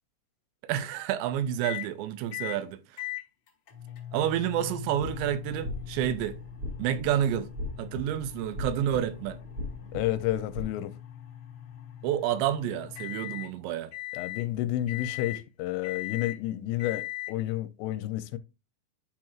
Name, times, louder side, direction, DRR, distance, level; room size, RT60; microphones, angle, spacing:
voice 1, 0.6-3.0 4.1-6.4 6.8-7.5 7.8-9.4 12.0-13.9, right 11 dB, 85° right, 2.9 m, -29 dB
sound 1, 1.6-1.9 2.3-2.6 3.0-13.5 13.9-14.5 14.9-15.4 15.8-16.4 16.8-17.3, left 14 dB, 60° left, 1.9 m, -40 dB
sound 2, 5.0-10.6, left 1 dB, 50° right, 1.5 m, -40 dB
voice 2, 9.9-10.9 14.1-18.4, left 14 dB, 85° left, 2.8 m, -30 dB
12.0 x 4.5 x 2.4 m
omnidirectional pair, 5.0 m